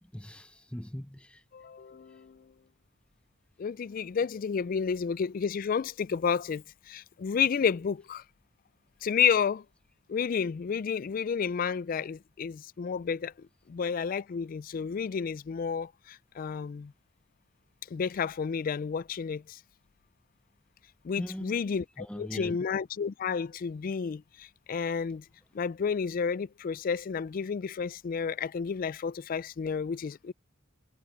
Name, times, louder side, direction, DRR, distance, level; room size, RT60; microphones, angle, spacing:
voice 1, 0.0-1.4 21.2-21.6 22.0-22.6, equal, 5° left, 0.8 m, -40 dB
voice 2, 1.5-2.4 3.6-8.2 9.0-9.6 10.1-13.3 13.7-16.9 17.9-19.6 21.0-25.2 25.5-30.3, left 6 dB, 45° left, 0.3 m, -31 dB
head